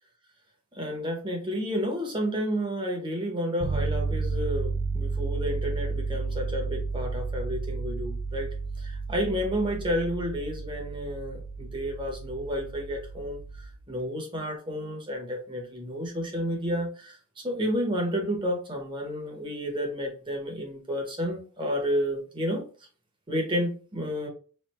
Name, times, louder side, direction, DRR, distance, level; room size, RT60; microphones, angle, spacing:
voice 1, 0.7-8.5 8.8-22.6 23.3-24.3, equal, 20° right, 0 dB, 0.9 m, -31 dB
sound 1, 3.6-13.7, right 4 dB, 65° right, 0.9 m, -32 dB
3.2 x 2.6 x 4.2 m, 0.39 s
head